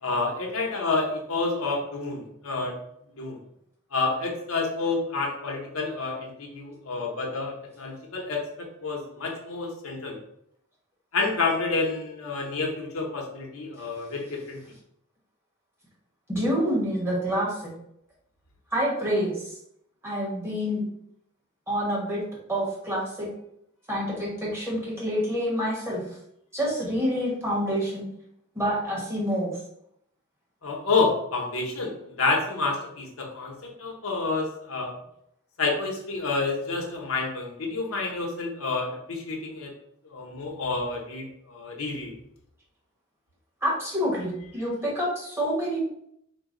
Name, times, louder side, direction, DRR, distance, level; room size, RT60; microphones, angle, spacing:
voice 1, 0.0-2.7 3.2-3.4 3.9-10.2 11.1-14.6 30.6-34.9 35.6-39.7 40.1-42.1, left 3 dB, 75° left, 0 dB, 0.9 m, -29 dB
voice 2, 16.3-17.7 18.7-19.5 20.0-20.8 21.7-22.2 22.5-23.3 23.9-26.0 26.5-28.0 28.5-29.5 43.6-45.8, equal, 10° right, -5 dB, 1.2 m, -27 dB
3.8 x 2.2 x 3.8 m, 0.74 s
head